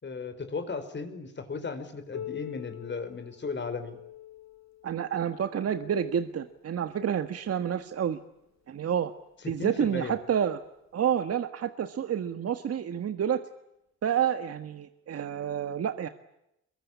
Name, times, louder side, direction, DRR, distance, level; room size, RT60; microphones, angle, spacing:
voice 1, 0.0-4.0 9.4-10.2, left 4 dB, 35° left, 9 dB, 5.1 m, -36 dB
Piano, 2.1-7.4 8.3-8.4 8.9-9.0 9.8-9.9 10.9-11.0, left 11 dB, 65° left, 3.4 m, -46 dB
voice 2, 4.8-8.2 8.7-9.1 9.5-10.6 10.9-13.5 14.0-16.1, right 8 dB, 50° right, 9 dB, 1.6 m, -29 dB
24.0 x 22.5 x 9.9 m, 0.83 s
cardioid pair, 90°, 30 cm